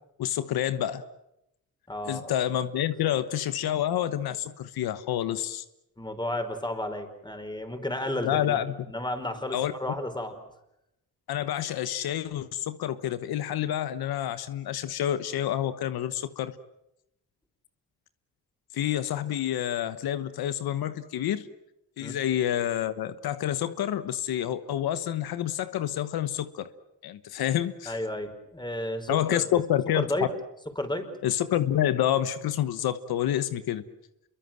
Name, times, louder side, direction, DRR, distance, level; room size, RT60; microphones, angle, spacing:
voice 1, 0.2-1.0 2.1-5.6 8.2-8.7 9.5-9.7 11.3-16.5 18.7-21.5 22.0-26.7 27.0-28.0 29.1-30.1 31.2-33.8, left 11 dB, 90° left, 12 dB, 1.2 m, -28 dB
voice 2, 1.9-2.3 6.0-8.6 8.9-10.3 22.0-22.1 27.8-29.6 29.9-30.3 30.7-31.1, left 1 dB, 10° left, 7 dB, 5.2 m, -32 dB
27.5 x 23.0 x 7.7 m, 0.84 s
cardioid pair, 70°, 36 cm